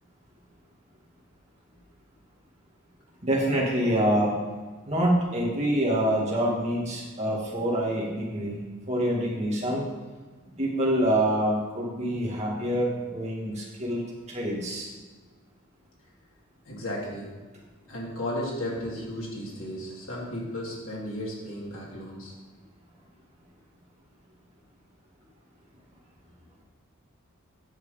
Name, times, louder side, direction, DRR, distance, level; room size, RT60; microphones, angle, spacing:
voice 1, 3.2-4.4 4.9-9.9 10.6-14.9, right 1 dB, 30° right, -3 dB, 2.3 m, -26 dB
voice 2, 16.6-17.3 17.9-22.3, left 1 dB, 70° left, -4 dB, 3.0 m, -34 dB
9.7 x 6.5 x 5.2 m, 1.3 s
head